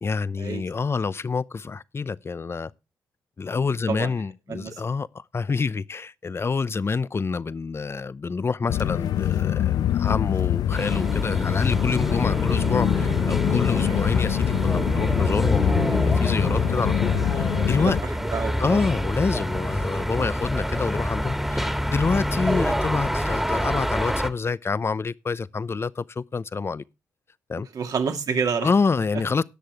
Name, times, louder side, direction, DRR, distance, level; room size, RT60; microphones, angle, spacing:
voice 1, 0.0-2.7 3.4-18.0 18.6-26.8 27.5-27.7 28.6-29.4, left 4 dB, 40° left, 0.7 m, -27 dB
voice 2, 4.5-4.8 13.7-14.1 17.8-17.9 18.2-18.9 27.7-28.7, right 6 dB, 65° right, 2.5 m, -28 dB
sound 1, 8.7-18.0, left 11 dB, 80° left, 0.5 m, -24 dB
sound 2, 10.7-24.3, equal, 5° right, 1.8 m, -27 dB
18.5 x 6.5 x 3.5 m
supercardioid pair, 50°, 7 cm